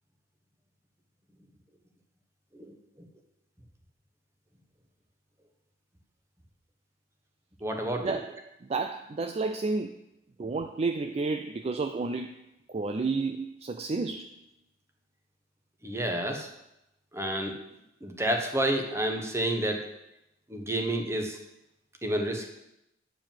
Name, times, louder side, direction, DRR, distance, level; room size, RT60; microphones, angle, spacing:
voice 1, 7.6-8.2 15.8-16.5 17.1-17.6 18.0-19.9 20.5-21.4 22.0-22.5, right 1 dB, 15° right, 3 dB, 1.1 m, -29 dB
voice 2, 8.7-9.9 10.4-12.4 12.7-14.3, right 3 dB, 35° right, 8 dB, 0.3 m, -31 dB
9.1 x 4.9 x 7.3 m, 0.86 s
head